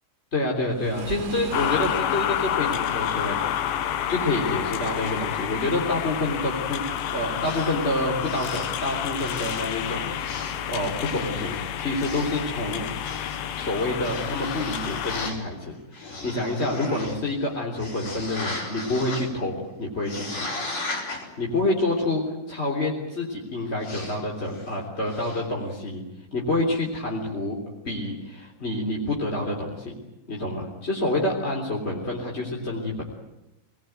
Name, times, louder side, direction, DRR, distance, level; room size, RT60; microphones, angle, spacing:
voice 1, 0.3-3.7 4.1-6.8 7.1-12.8 13.5-20.5 21.4-26.0 26.3-27.6 27.8-29.9 30.3-33.0, left 2 dB, 15° left, -1 dB, 2.9 m, -28 dB
Waves surf, 0.7-2.2, right 6 dB, 45° right, 2.6 m, -36 dB
sound 1, 1.5-15.3, left 10 dB, 85° left, 3.6 m, -29 dB
sound 2, 7.4-9.8 10.1-10.8 11.1-15.4 15.9-17.4 17.8-19.4 20.0-21.3 23.8-24.2 24.5-24.7 25.0-25.4, left 2 dB, 45° left, 6.2 m, -37 dB
26.5 x 20.0 x 9.3 m, 0.97 s
omnidirectional pair, 5.1 m